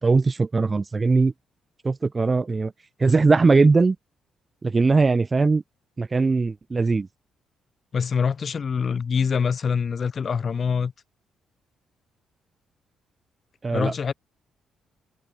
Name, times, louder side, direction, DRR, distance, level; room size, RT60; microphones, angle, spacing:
voice 1, 0.0-1.3 1.8-2.7 3.0-4.0 4.6-5.6 6.0-7.1 13.6-13.9, right 4 dB, 30° right, 5.6 m, -20 dB
voice 2, 7.9-10.9 13.7-14.1, left 6 dB, 45° left, 3.5 m, -24 dB
cardioid pair, 90°, 0 cm